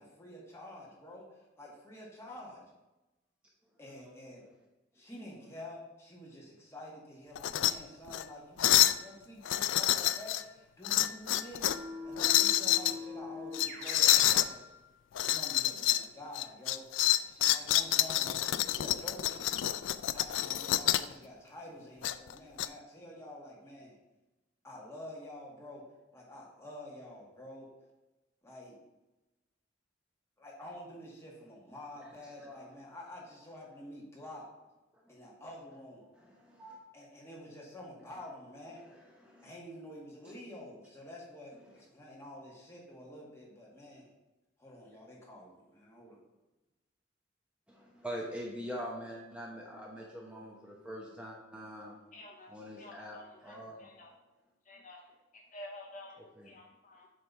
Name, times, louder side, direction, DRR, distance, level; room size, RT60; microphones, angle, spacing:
voice 1, 0.0-2.7 3.8-4.4 4.9-14.7 15.1-19.5 20.1-24.0 24.6-25.8 26.1-27.7 28.4-28.8 30.4-34.5 35.1-36.1 36.9-38.8 39.4-44.1 44.6-46.2, left 1 dB, 15° left, -4 dB, 1.8 m, -49 dB
sound 1, 7.3-7.7 8.1-8.2 8.6-9.0 9.4-10.4 10.8-11.8 12.2-12.9 13.5-14.5 15.1-16.0 16.3-21.1 22.0-22.7, left 14 dB, 85° left, 0.3 m, -28 dB
Keyboard (musical), 11.7-14.4, left 2 dB, 55° right, 1.7 m, -42 dB
voice 2, 36.2-36.8 39.2-39.5 47.7-52.0 52.5-53.2 53.4-53.8, equal, 5° right, -3 dB, 0.9 m, -43 dB
voice 3, 52.1-54.2 54.6-57.1, left 1 dB, 45° left, 0 dB, 0.9 m, -51 dB
7.6 x 3.4 x 5.5 m, 1.0 s
head